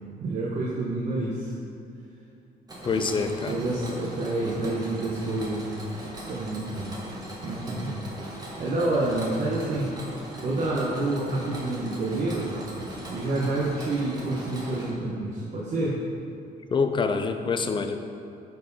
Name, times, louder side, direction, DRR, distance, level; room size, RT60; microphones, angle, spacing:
voice 1, 0.2-1.6 2.9-3.1 3.5-5.8 6.3-7.0 7.4-8.0 8.6-9.9 10.4-16.0, right 2 dB, 50° right, -5 dB, 1.2 m, -28 dB
Mechanisms, 2.7-14.9, right 1 dB, 25° right, 1.6 m, -40 dB
voice 2, 2.8-3.6 16.7-18.0, left 5 dB, 30° left, 7 dB, 0.5 m, -26 dB
10.5 x 4.7 x 4.1 m, 2.6 s
cardioid pair, 125°, 16 cm